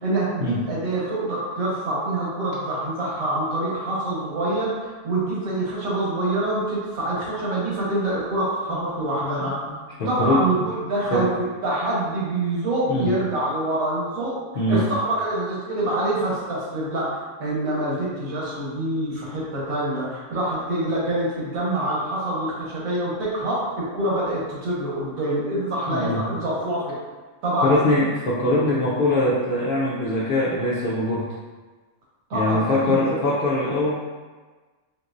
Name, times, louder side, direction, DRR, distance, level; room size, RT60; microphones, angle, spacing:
voice 1, 0.0-9.5 10.1-11.3 11.6-14.4 14.7-17.1 17.4-26.9 27.4-28.0 32.3-33.2, right 1 dB, 80° right, -6 dB, 1.6 m, -25 dB
voice 2, 10.0-10.4 11.1-11.3 12.9-13.1 14.5-14.9 25.9-26.2 27.6-31.3 32.3-33.9, left 2 dB, 60° left, -6 dB, 0.6 m, -22 dB
4.4 x 3.0 x 2.5 m, 1.3 s
omnidirectional pair, 1.4 m